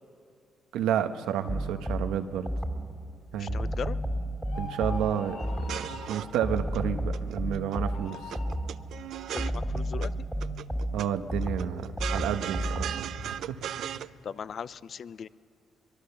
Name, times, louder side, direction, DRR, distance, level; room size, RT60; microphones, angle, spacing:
voice 1, 0.7-2.5 3.3-3.7 4.6-5.4 5.7-5.8 6.1-8.2 10.9-13.6, right 9 dB, 90° right, 8 dB, 1.1 m, -31 dB
sound 1, 1.5-3.0 3.5-5.9 6.4-8.9 9.4-13.1, equal, 5° left, 2.4 m, -32 dB
voice 2, 3.3-4.0 9.3-10.1 14.2-15.3, left 7 dB, 55° left, 17 dB, 0.5 m, -38 dB
sound 2, 4.4-6.3 7.6-8.6, left 2 dB, 85° left, 2.6 m, -42 dB
sound 3, 5.5-6.8 7.1-7.8 8.1-10.1 10.4-11.1 11.4-14.1, right 10 dB, 75° right, 0.5 m, -37 dB
23.5 x 21.5 x 7.0 m, 2.5 s
cardioid pair, 90°, 0 cm